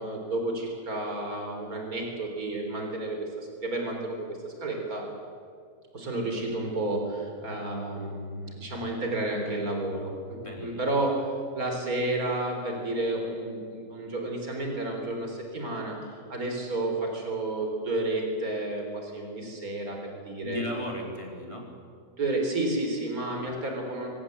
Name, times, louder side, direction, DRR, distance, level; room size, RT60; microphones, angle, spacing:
voice 1, 0.0-4.2 4.4-5.0 5.9-11.3 11.5-16.0 16.3-20.6 22.2-24.1, right 2 dB, 60° right, 2 dB, 4.4 m, -31 dB
voice 2, 10.4-10.9 20.4-21.7 23.3-23.5, left 1 dB, 20° left, 0 dB, 3.9 m, -36 dB
24.5 x 17.5 x 8.3 m, 2.2 s
omnidirectional pair, 1.8 m